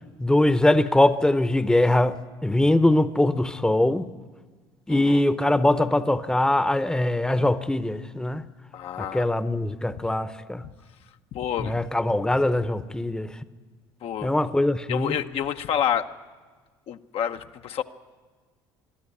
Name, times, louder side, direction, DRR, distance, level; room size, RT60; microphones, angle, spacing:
voice 1, 0.2-4.1 4.9-8.4 9.0-10.6 11.6-13.3 14.2-15.2, left 1 dB, 5° left, 0.8 m, -22 dB
voice 2, 4.9-5.2 8.7-9.4 11.3-11.9 14.0-14.3 14.9-16.1 16.9-17.8, left 9 dB, 55° left, 0.8 m, -29 dB
22.0 x 12.5 x 9.8 m
hypercardioid pair, 75°, 12 cm